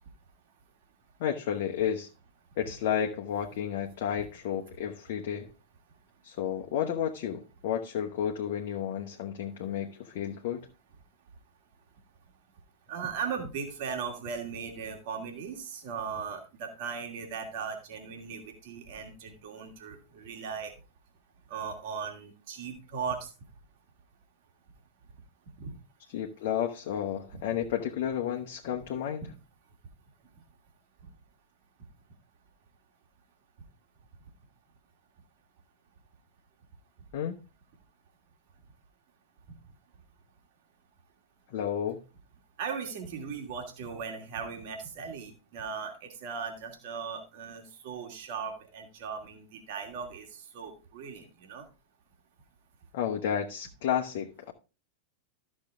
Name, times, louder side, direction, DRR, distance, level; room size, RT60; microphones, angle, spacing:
voice 1, 1.2-2.1 2.6-5.5 6.2-10.7 26.1-29.3 37.1-37.3 41.5-42.0 52.9-54.5, left 9 dB, 50° left, 1.0 m, -32 dB
voice 2, 12.9-20.7 21.5-23.3 25.6-25.7 27.3-27.4 42.6-51.6, right 6 dB, 50° right, 2.5 m, -38 dB
13.5 x 6.3 x 3.7 m
figure-of-eight pair, 90°, 0 cm